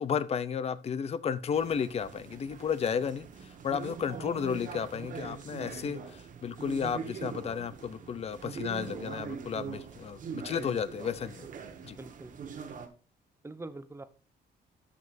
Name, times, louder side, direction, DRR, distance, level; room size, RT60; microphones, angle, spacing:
voice 1, 0.0-11.5 11.8-12.0, left 7 dB, 35° left, 0.6 m, -33 dB
sound 1, 1.5-12.9, right 6 dB, 45° right, 1.4 m, -42 dB
voice 2, 11.9-12.3 13.4-14.0, right 2 dB, 15° right, 0.7 m, -44 dB
11.0 x 7.6 x 2.6 m
cardioid pair, 150°, 18 cm